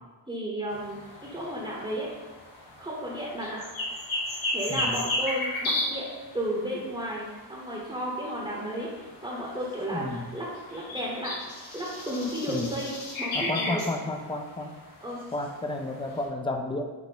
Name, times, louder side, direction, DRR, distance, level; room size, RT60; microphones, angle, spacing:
voice 1, 0.3-1.0 1.3-2.1 2.8-3.6 4.5-6.1 6.3-10.4 10.7-13.8 15.0-15.2, equal, 10° right, -4 dB, 0.9 m, -33 dB
sound 1, 0.7-16.2, left 1 dB, 90° left, 1.4 m, -36 dB
voice 2, 4.7-5.0 9.9-10.3 12.5-12.7 13.3-14.7 15.3-16.9, left 2 dB, 10° left, 4 dB, 0.4 m, -32 dB
5.7 x 2.0 x 3.9 m, 1.3 s
cardioid pair, 65°, 46 cm